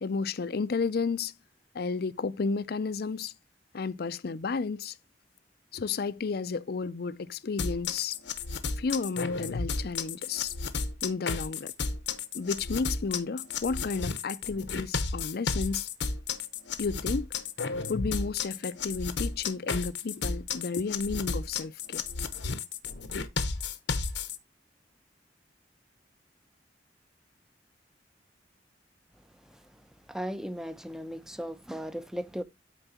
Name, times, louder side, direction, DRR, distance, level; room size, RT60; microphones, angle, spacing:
voice 1, 0.0-1.3 1.7-3.3 3.7-5.0 5.7-8.2 8.8-10.5 11.0-11.7 12.3-15.9 16.8-17.3 17.9-22.0, left 4 dB, 60° left, 0.5 m, -32 dB
sound 1, 7.6-24.4, left 4 dB, 85° left, 0.9 m, -33 dB
voice 2, 30.1-32.4, equal, 5° right, 0.6 m, -36 dB
12.5 x 4.5 x 2.8 m
head